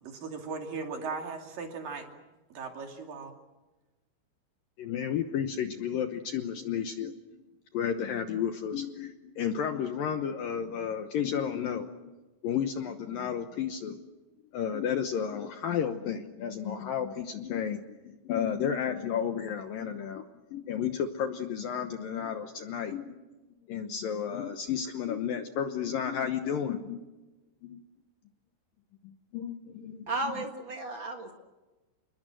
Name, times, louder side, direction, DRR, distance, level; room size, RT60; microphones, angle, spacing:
voice 1, 0.0-2.1 2.5-3.3, right 4 dB, 55° right, 3 dB, 4.0 m, -38 dB
voice 2, 4.8-7.1 7.7-12.1 12.4-14.0 14.5-17.8 18.2-20.3 20.5-23.2 23.7-27.0 27.6-27.8 29.3-30.4, left 8 dB, 70° left, 7 dB, 2.3 m, -32 dB
voice 3, 30.1-31.3, right 2 dB, 70° right, 3 dB, 1.1 m, -34 dB
29.0 x 21.5 x 7.8 m, 1.1 s
omnidirectional pair, 5.2 m